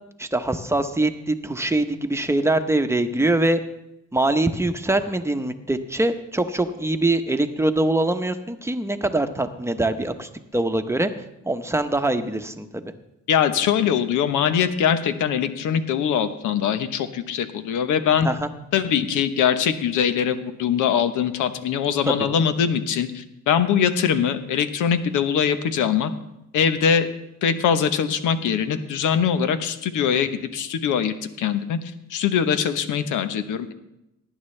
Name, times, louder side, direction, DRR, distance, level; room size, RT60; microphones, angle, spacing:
voice 1, 0.2-3.6 4.1-11.1 11.5-12.9 18.2-18.5 22.1-22.2, right 2 dB, 10° right, 8 dB, 0.9 m, -23 dB
voice 2, 13.3-18.3 18.7-26.1 26.5-27.1 27.4-31.8 32.1-33.7, left 8 dB, 85° left, 10 dB, 1.0 m, -22 dB
18.5 x 10.0 x 3.3 m, 0.86 s
cardioid pair, 90°, 30 cm